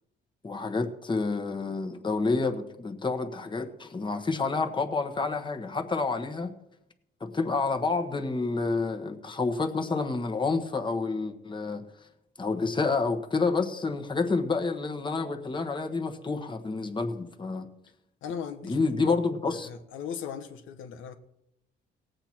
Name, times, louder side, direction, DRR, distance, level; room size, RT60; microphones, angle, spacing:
voice 1, 0.4-6.5 7.2-11.8 12.4-17.7 18.6-19.7, left 4 dB, 25° left, 1.3 m, -29 dB
voice 2, 18.2-19.2 19.6-21.2, left 7 dB, 85° left, 1.2 m, -38 dB
18.0 x 7.9 x 4.5 m
cardioid pair, 90°, 20 cm